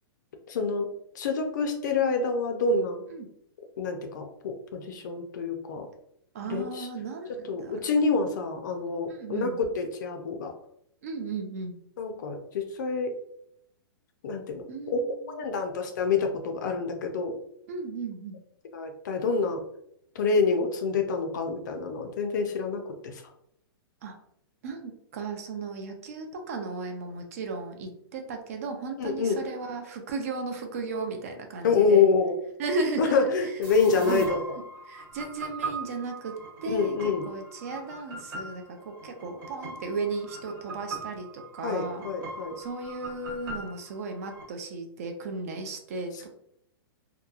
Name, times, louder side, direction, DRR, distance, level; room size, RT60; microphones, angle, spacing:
voice 1, 0.5-3.1 3.8-5.9 6.5-6.9 7.3-10.5 12.0-13.1 14.2-15.0 15.4-17.4 18.7-19.6 20.2-23.2 29.0-29.4 31.6-32.4 33.0-34.4 36.7-37.3 41.6-42.6 46.1-46.3, left 4 dB, 45° left, 4 dB, 0.4 m, -27 dB
voice 2, 6.3-7.8 9.1-9.6 11.0-11.8 14.7-15.4 17.7-18.4 24.0-24.1 24.6-32.1 32.6-33.5 33.9-34.3 34.9-36.3 36.6-42.0 42.6-46.1, right 3 dB, 35° right, 4 dB, 0.4 m, -35 dB
sound 1, 33.6-44.4, right 2 dB, 55° right, 1.1 m, -41 dB
2.8 x 2.2 x 2.3 m, 0.73 s
hypercardioid pair, 175°, 13 cm